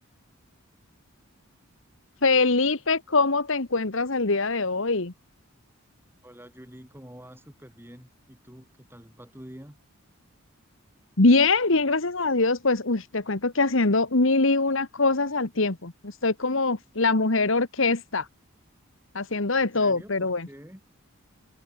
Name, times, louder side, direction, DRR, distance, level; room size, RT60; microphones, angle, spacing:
voice 1, 2.2-5.1 11.2-18.3 19.1-20.5, left 3 dB, 65° left, 1.5 m, -23 dB
voice 2, 6.2-9.8 19.6-20.8, equal, 10° right, 5.0 m, -47 dB
head